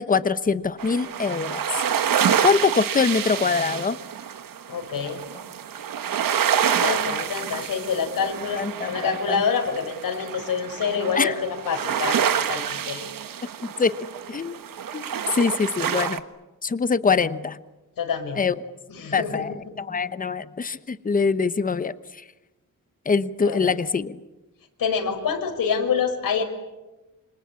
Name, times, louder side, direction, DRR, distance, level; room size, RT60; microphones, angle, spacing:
voice 1, 0.0-1.6 2.4-4.0 8.6-9.4 11.2-11.4 13.6-13.9 14.3-14.6 14.9-15.0 15.4-16.2 16.6-17.6 18.4-18.5 19.1-19.5 19.8-21.9 23.1-24.2, left 5 dB, 25° left, 14 dB, 0.9 m, -23 dB
sound 1, 0.8-16.2, right 8 dB, 80° right, 1.4 m, -27 dB
voice 2, 4.7-5.2 6.8-13.1 18.0-18.4 18.9-19.4 23.4-23.7 24.8-26.4, left 6 dB, 90° left, 4 dB, 5.4 m, -27 dB
27.5 x 25.5 x 8.4 m, 1.1 s
wide cardioid pair, 165°, 33 cm